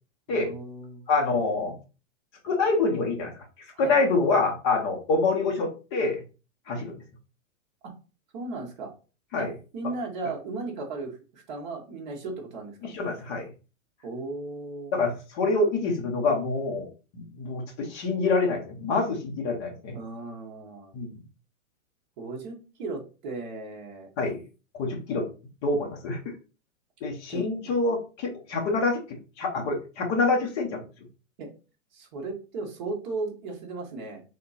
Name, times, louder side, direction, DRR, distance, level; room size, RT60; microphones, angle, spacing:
voice 1, 0.3-1.0 3.7-4.0 7.8-7.9 8.3-8.9 9.3-9.5 9.7-12.8 14.0-14.9 19.9-20.9 22.2-24.1 27.3-27.7 31.4-31.5 31.9-34.2, right 3 dB, 35° right, 0 dB, 1.2 m, -36 dB
voice 2, 1.1-1.8 2.4-3.3 3.8-6.2 6.7-6.9 9.3-9.5 10.2-10.3 12.8-13.5 14.9-16.9 17.1-19.9 20.9-21.1 24.2-24.4 24.7-25.3 25.6-26.3 27.0-29.0 29.4-30.8, left 3 dB, 20° left, 1 dB, 0.6 m, -26 dB
3.6 x 2.8 x 4.0 m, 0.33 s
hypercardioid pair, 165°, 41 cm